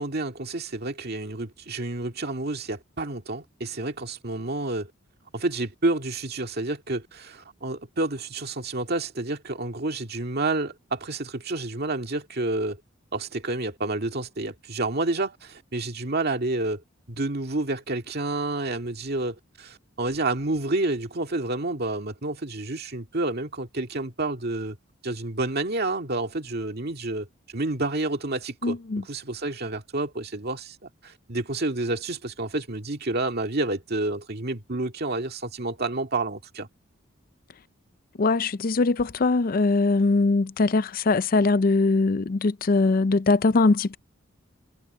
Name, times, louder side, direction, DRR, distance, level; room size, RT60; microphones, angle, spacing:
voice 1, 0.0-4.9 5.3-12.8 13.1-16.8 17.1-24.8 25.0-27.3 27.5-30.8 31.0-36.7, right 2 dB, 50° right, 2.0 m, -29 dB
voice 2, 28.6-29.0 38.2-44.0, left 3 dB, 45° left, 0.5 m, -21 dB
head